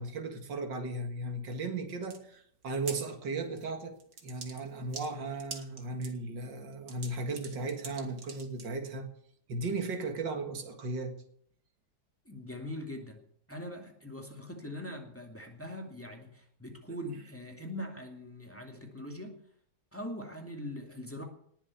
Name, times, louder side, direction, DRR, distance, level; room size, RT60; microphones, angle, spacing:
voice 1, 0.0-4.0 4.2-9.1 9.5-11.1, right 3 dB, 75° right, 6 dB, 2.4 m, -36 dB
sound 1, 2.0-2.2 2.6-3.0 3.6-3.7 4.0-6.1 6.7-8.6, right 4 dB, 55° right, 2.3 m, -45 dB
voice 2, 12.3-13.2 13.5-19.4 19.9-21.2, left 1 dB, 5° left, 2 dB, 2.3 m, -42 dB
19.0 x 7.3 x 8.4 m, 0.64 s
omnidirectional pair, 1.9 m